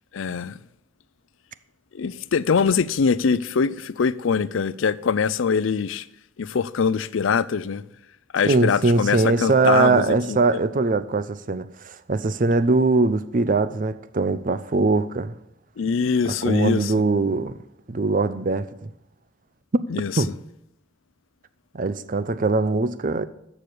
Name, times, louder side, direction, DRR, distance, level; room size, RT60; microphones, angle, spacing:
voice 1, 0.1-0.6 1.9-6.0 6.4-7.8 8.3-10.6 15.8-16.9 19.9-20.2, left 6 dB, 80° left, 0.5 m, -23 dB
voice 2, 8.4-15.4 16.4-17.6 17.9-18.9 19.7-19.8 20.2-20.3 21.7-23.3, right 3 dB, 45° right, 0.5 m, -21 dB
13.5 x 4.9 x 7.9 m
head